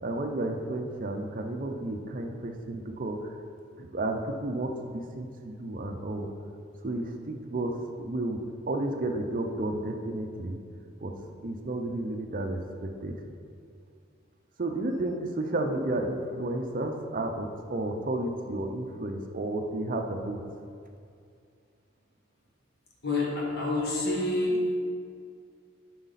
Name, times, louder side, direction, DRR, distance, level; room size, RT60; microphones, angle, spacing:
voice 1, 0.0-3.3 3.8-6.3 6.8-8.4 8.7-10.6 11.0-11.1 11.4-13.1 14.6-20.4, right 2 dB, 40° right, 4 dB, 0.6 m, -32 dB
voice 2, 23.0-24.7, left 2 dB, 50° left, -2 dB, 1.6 m, -27 dB
11.5 x 4.9 x 4.1 m, 2.3 s
head